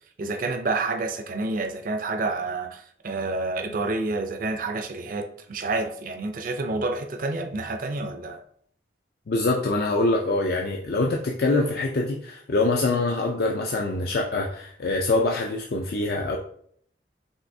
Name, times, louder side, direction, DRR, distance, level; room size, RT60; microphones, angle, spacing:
voice 1, 0.2-8.4, right 3 dB, 50° right, 0.5 m, -29 dB
voice 2, 9.3-16.4, left 2 dB, 60° left, 0.4 m, -24 dB
5.4 x 3.2 x 2.7 m
head